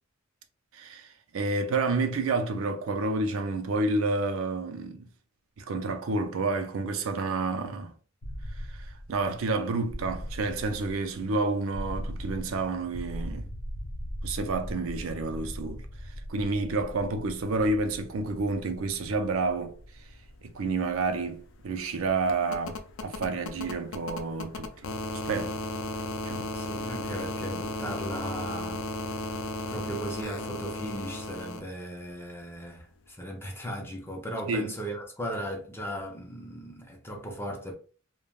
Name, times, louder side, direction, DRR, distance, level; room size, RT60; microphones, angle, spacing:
voice 1, 0.7-1.1 1.3-5.1 5.6-7.9 8.7-13.5 14.2-15.9 16.3-19.7 20.4-24.9 25.3-25.6 26.2-26.5 34.5-34.7, right 3 dB, 70° right, 0.5 m, -29 dB
sound 1, 8.2-24.0, equal, 85° left, 0.8 m, -41 dB
sound 2, 20.4-20.5 20.7-31.6 33.0-33.1, left 2 dB, 65° left, 0.4 m, -36 dB
voice 2, 26.5-37.7, equal, 10° left, 0.6 m, -37 dB
3.3 x 2.2 x 2.3 m
head